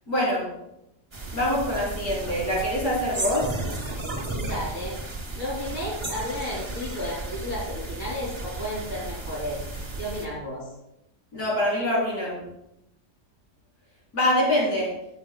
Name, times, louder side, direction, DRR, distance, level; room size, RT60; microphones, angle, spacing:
voice 1, 0.1-0.5 1.3-3.5 11.3-12.4 14.1-14.9, left 1 dB, 65° left, -6 dB, 3.9 m, -24 dB
sound 1, 1.1-10.3, right 2 dB, 20° right, 1.0 m, -34 dB
voice 2, 4.3-5.0 5.3-9.6 10.0-10.7, left 1 dB, 40° left, -6 dB, 3.2 m, -33 dB
16.0 x 7.0 x 2.2 m, 0.85 s
omnidirectional pair, 1.7 m